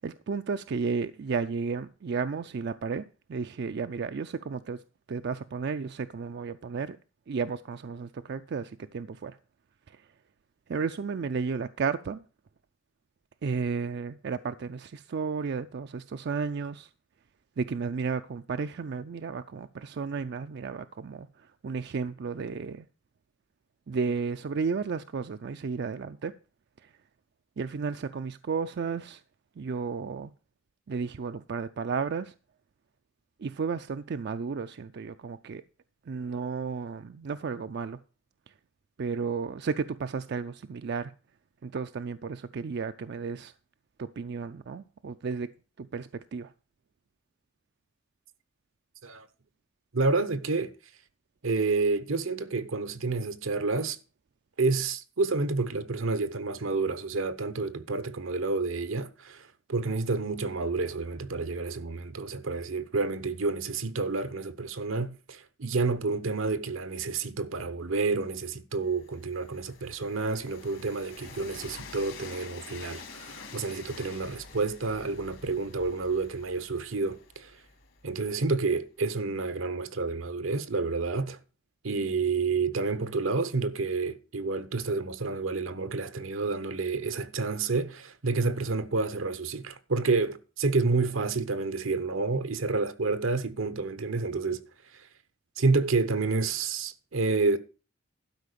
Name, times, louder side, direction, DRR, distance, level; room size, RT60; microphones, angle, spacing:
voice 1, 0.0-4.8 5.1-7.0 7.3-9.4 9.9-10.1 10.7-12.2 13.4-16.9 17.6-22.9 23.9-26.3 26.8-26.9 27.6-29.2 29.6-30.3 30.9-32.3 33.4-35.6 36.1-38.0 39.0-41.1 41.6-43.5 44.0-45.5 45.8-46.5, right 5 dB, 55° right, 0.4 m, -33 dB
voice 2, 49.9-50.7 51.4-54.0 54.6-77.5 78.0-81.4 81.8-94.6 94.9-95.1 95.6-97.6, right 3 dB, 80° right, 0.9 m, -29 dB
Train, 68.8-78.7, left 5 dB, 70° left, 2.3 m, -48 dB
12.0 x 5.0 x 6.7 m
head